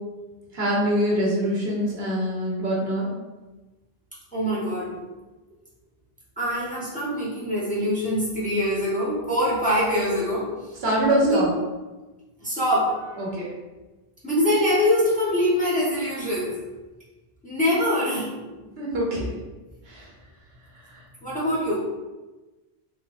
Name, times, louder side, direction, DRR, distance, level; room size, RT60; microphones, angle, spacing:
voice 1, 0.5-3.1 10.8-11.5 13.2-13.5 18.8-19.3 19.9-20.0, right 1 dB, 75° right, -4 dB, 1.1 m, -24 dB
voice 2, 4.3-5.0 6.4-10.8 11.2-11.4 12.4-13.3 14.2-16.5 17.4-18.3 21.2-21.7, equal, 10° left, -7 dB, 0.8 m, -24 dB
3.4 x 3.0 x 2.4 m, 1.2 s
omnidirectional pair, 1.1 m